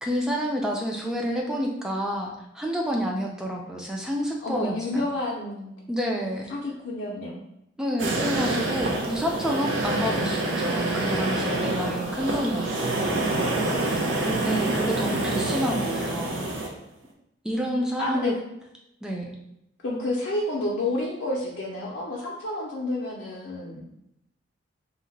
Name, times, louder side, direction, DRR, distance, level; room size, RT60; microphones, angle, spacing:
voice 1, 0.0-5.0 5.9-6.5 7.8-13.9 14.2-16.4 17.4-18.3 19.0-19.3, equal, 5° right, -1 dB, 0.4 m, -29 dB
voice 2, 4.4-5.7 6.5-7.4 18.0-18.3 19.8-23.8, left 2 dB, 70° left, -4 dB, 0.5 m, -29 dB
sound 1, 8.0-16.7, right 2 dB, 80° right, 0.6 m, -27 dB
2.8 x 2.1 x 3.9 m, 0.82 s
head